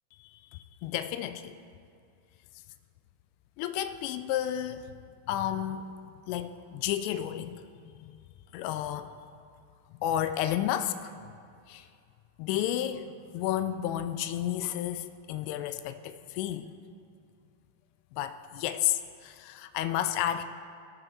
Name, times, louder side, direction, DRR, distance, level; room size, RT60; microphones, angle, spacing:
voice 1, 0.2-1.6 3.6-4.9 5.3-5.8 6.3-8.1 8.5-9.1 9.9-11.1 11.7-11.8 12.4-16.7 18.1-20.4, left 11 dB, 45° left, 12 dB, 0.4 m, -32 dB
15.0 x 6.5 x 2.8 m, 2.4 s
figure-of-eight pair, 90°, 0 cm